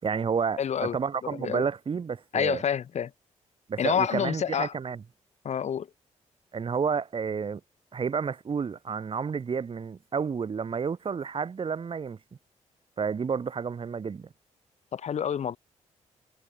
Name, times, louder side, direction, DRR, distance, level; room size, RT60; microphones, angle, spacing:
voice 1, 0.0-2.6 3.7-5.0 6.5-7.6 7.9-12.2 13.0-14.3, right 6 dB, 45° right, 5.8 m, -30 dB
voice 2, 0.6-1.0 1.3-1.6 2.3-3.1 3.8-4.7 5.4-5.9 14.9-15.6, left 8 dB, 60° left, 7.7 m, -28 dB
cardioid pair, 100°, 13 cm